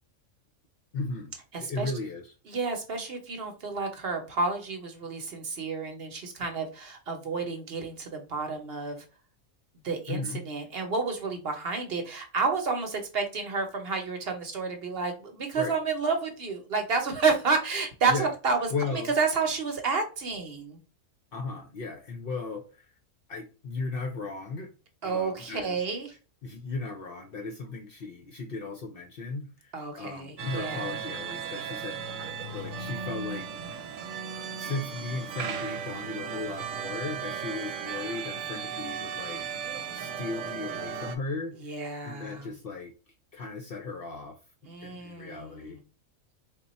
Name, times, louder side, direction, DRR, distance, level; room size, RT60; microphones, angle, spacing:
voice 1, 0.9-1.3 1.6-2.3 10.1-10.4 15.6-15.7 18.1-18.3 18.7-19.1 21.3-22.9 23.3-24.7 25.0-25.8 26.4-33.5 34.6-39.4 39.7-41.6 42.0-42.9 43.3-44.4 44.8-45.8, left 3 dB, 60° left, 4 dB, 0.7 m, -36 dB
voice 2, 1.5-1.9 2.5-9.0 9.8-20.8 25.0-26.1 29.7-31.0 41.6-42.5 44.7-45.8, right 4 dB, 55° right, 4 dB, 0.9 m, -30 dB
sound 1, 30.4-41.2, right 6 dB, 90° right, 1.0 m, -36 dB
3.5 x 2.2 x 4.0 m, 0.33 s
omnidirectional pair, 1.4 m